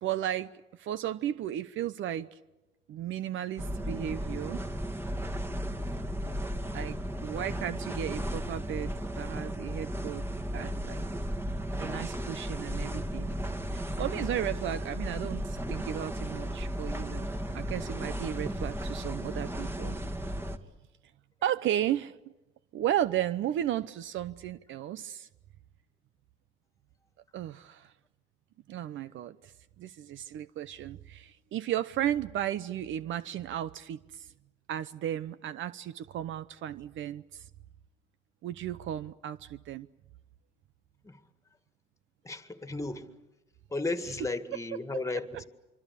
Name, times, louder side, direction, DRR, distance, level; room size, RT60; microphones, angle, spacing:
voice 1, 0.0-2.4 2.9-4.6 6.7-10.3 10.5-11.0 11.8-13.3 13.7-17.3 17.5-20.0 21.4-22.1 22.7-25.3 27.3-27.9 28.7-29.5 29.8-34.3 34.7-37.5 38.4-39.9, right 11 dB, 65° right, 0.8 m, -34 dB
sound 1, 3.6-20.6, equal, 10° right, 1.9 m, -35 dB
voice 2, 42.2-43.1 43.7-45.4, left 3 dB, 15° left, 2.0 m, -34 dB
25.5 x 25.0 x 8.4 m
cardioid pair, 100°, 21 cm